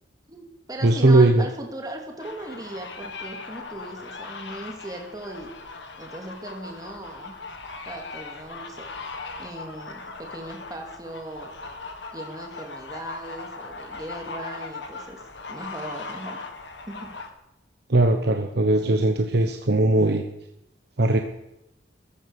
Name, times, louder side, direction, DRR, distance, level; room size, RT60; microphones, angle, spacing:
voice 1, 0.3-5.5 6.0-7.3 7.9-8.9 9.4-11.5 12.1-15.2 15.5-16.4 16.9-17.1, right 1 dB, 20° right, 1 dB, 2.4 m, -38 dB
voice 2, 0.8-1.5 17.9-20.2 21.0-21.2, right 2 dB, 65° right, 5 dB, 1.1 m, -19 dB
sound 1, 2.2-17.3, left 3 dB, 75° left, 1.9 m, -39 dB
14.5 x 13.5 x 7.0 m, 0.88 s
head